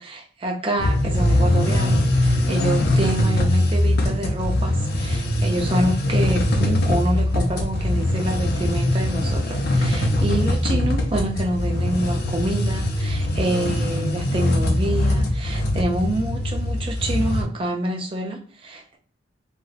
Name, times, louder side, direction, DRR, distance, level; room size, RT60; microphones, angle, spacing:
voice 1, 0.0-19.0, right 1 dB, 30° right, 1 dB, 0.4 m, -27 dB
sound 1, 0.8-17.4, left 1 dB, 55° left, 0.5 m, -22 dB
2.9 x 2.6 x 2.4 m, 0.43 s
head